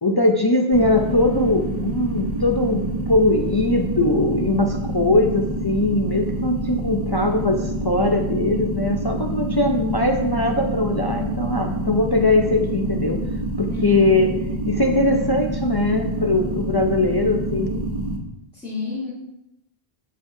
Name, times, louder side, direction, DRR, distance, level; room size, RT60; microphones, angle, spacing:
voice 1, 0.0-13.2 13.6-14.3 14.7-17.8, left 2 dB, 35° left, 3 dB, 0.4 m, -21 dB
sound 1, 0.7-18.2, right 1 dB, 40° right, 1.2 m, -27 dB
voice 2, 13.7-14.3 18.5-19.1, left 5 dB, 5° left, -8 dB, 2.0 m, -29 dB
13.0 x 5.2 x 2.7 m, 0.88 s
omnidirectional pair, 1.0 m